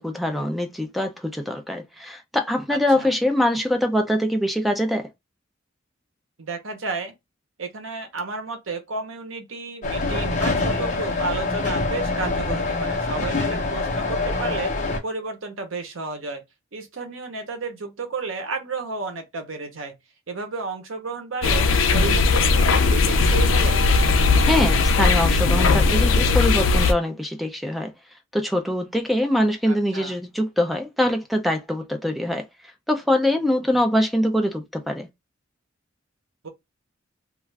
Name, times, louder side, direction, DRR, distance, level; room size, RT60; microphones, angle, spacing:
voice 1, 0.0-5.1 24.5-27.9 28.3-32.4 32.9-35.1, left 1 dB, ahead, 0.4 m, -23 dB
voice 2, 2.7-3.1 6.4-7.1 7.6-14.7 15.0-16.4 16.7-19.9 20.3-23.8 29.7-30.1 36.4-36.5, right 3 dB, 80° right, 0.8 m, -32 dB
sound 1, 9.8-15.0, left 3 dB, 40° left, 0.8 m, -25 dB
sound 2, 21.4-26.9, left 4 dB, 75° left, 0.4 m, -18 dB
2.4 x 2.3 x 3.2 m
head